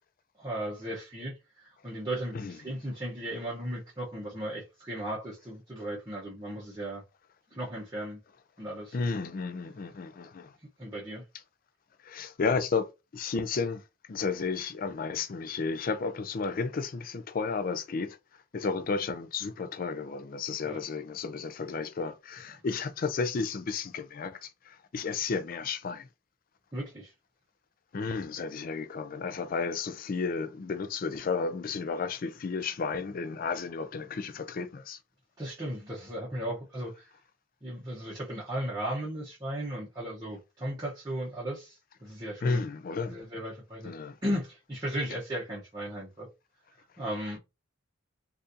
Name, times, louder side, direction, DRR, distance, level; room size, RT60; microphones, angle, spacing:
voice 1, 0.4-7.0 7.5-8.2 8.6-9.0 10.8-11.2 20.6-20.8 26.7-27.1 35.4-37.1 37.6-42.6 43.0-43.9 44.2-46.3 47.0-47.4, right 1 dB, 20° right, 0.8 m, -36 dB
voice 2, 8.9-10.5 12.0-12.9 13.1-13.8 14.1-18.2 18.5-26.1 27.9-35.0 42.4-43.2 43.8-44.1, left 4 dB, 40° left, 0.4 m, -32 dB
4.0 x 2.5 x 2.6 m
head